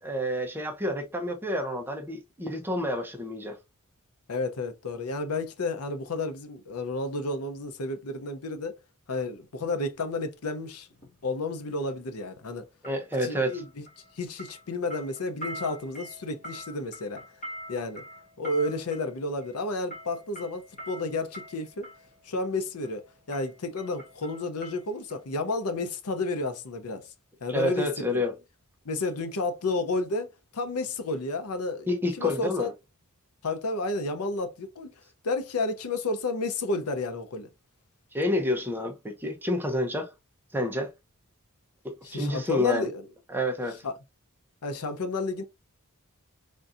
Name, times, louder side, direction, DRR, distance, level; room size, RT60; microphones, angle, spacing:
voice 1, 0.0-3.6 12.8-13.6 27.5-28.3 31.9-32.7 38.1-40.1 40.5-40.9 41.8-42.9 43.3-43.8, left 1 dB, 10° right, 0.6 m, -29 dB
voice 2, 4.3-8.8 9.1-10.9 11.2-12.7 13.2-13.8 14.1-17.2 17.7-18.0 18.4-21.9 22.2-27.1 27.4-28.2 28.8-31.9 32.2-32.7 33.4-34.9 35.2-37.5 42.0-43.1 43.8-44.0 44.6-45.4, left 2 dB, 80° left, 0.6 m, -31 dB
sound 1, 10.9-11.1 12.8-14.1 14.4-22.1 22.8-23.1 23.3-25.2 25.5-25.6, equal, 35° left, 1.4 m, -44 dB
3.6 x 2.6 x 2.4 m
head